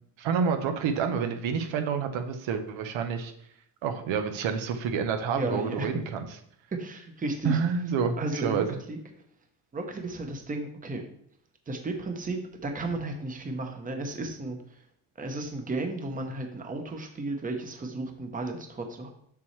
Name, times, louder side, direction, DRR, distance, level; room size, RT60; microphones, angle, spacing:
voice 1, 0.2-3.3 3.8-6.3 7.4-8.7, right 6 dB, 85° right, 6 dB, 1.0 m, -28 dB
voice 2, 5.3-5.9 6.8-7.6 8.2-9.0 9.7-11.0 11.7-14.8 15.2-19.1, right 2 dB, 20° right, 4 dB, 0.9 m, -34 dB
7.0 x 6.2 x 3.2 m, 0.68 s
cardioid pair, 145°, 44 cm